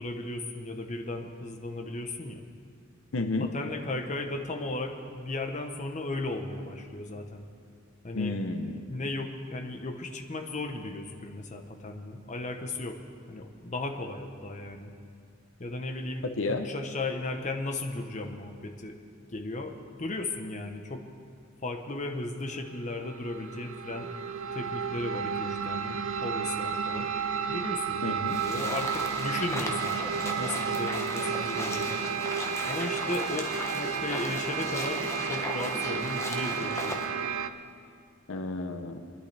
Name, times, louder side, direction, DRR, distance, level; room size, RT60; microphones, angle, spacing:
voice 1, 0.0-2.4 3.4-7.4 8.0-8.3 8.9-13.0 13.3-14.9 15.6-18.9 19.3-21.0 21.6-24.1 24.5-27.1 27.5-30.0 30.4-31.9 32.6-33.5 33.7-37.0, left 2 dB, 35° left, 4 dB, 0.9 m, -35 dB
voice 2, 3.1-3.5 8.1-8.9 16.2-16.7 28.0-28.4 38.3-39.0, left 3 dB, 75° left, 7 dB, 0.8 m, -31 dB
sound 1, 22.7-37.5, right 7 dB, 75° right, 0.5 m, -32 dB
sound 2, 28.3-37.1, left 2 dB, 15° left, 1.2 m, -37 dB
23.5 x 11.0 x 3.4 m, 2.3 s
head